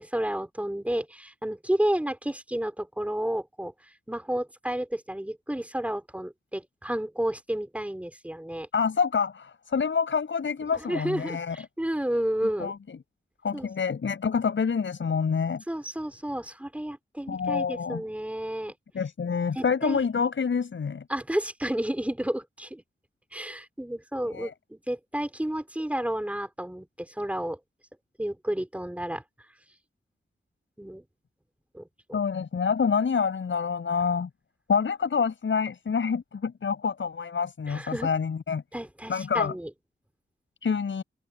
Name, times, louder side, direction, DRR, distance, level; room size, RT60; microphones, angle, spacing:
voice 1, 0.0-3.7 4.1-8.7 10.6-12.7 13.5-13.7 15.7-18.7 19.5-20.0 21.1-22.8 23.3-27.6 28.2-29.2 30.8-31.0 31.7-32.2 37.7-38.1 38.7-39.7, right 1 dB, 5° right, 3.4 m, -31 dB
voice 2, 8.7-11.6 12.6-13.0 13.4-15.6 17.3-18.0 18.9-21.0 24.3-24.5 32.1-34.3 34.7-38.6 39.1-39.5 40.6-41.0, left 6 dB, 75° left, 7.1 m, -27 dB
wide cardioid pair, 115°, 20 cm